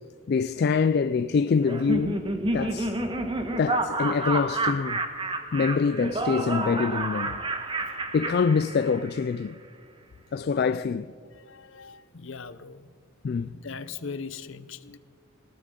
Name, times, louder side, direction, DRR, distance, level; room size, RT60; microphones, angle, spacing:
voice 1, 0.3-2.2 2.5-3.0 3.6-5.0 5.5-7.4 8.1-9.6 10.3-11.1 13.2-13.5, left 5 dB, 50° left, 0.3 m, -25 dB
Laughter, 1.7-9.2, right 2 dB, 25° right, 1.2 m, -29 dB
voice 2, 11.3-12.9 13.5-15.0, left 5 dB, 65° left, 0.7 m, -40 dB
19.0 x 17.5 x 3.7 m
head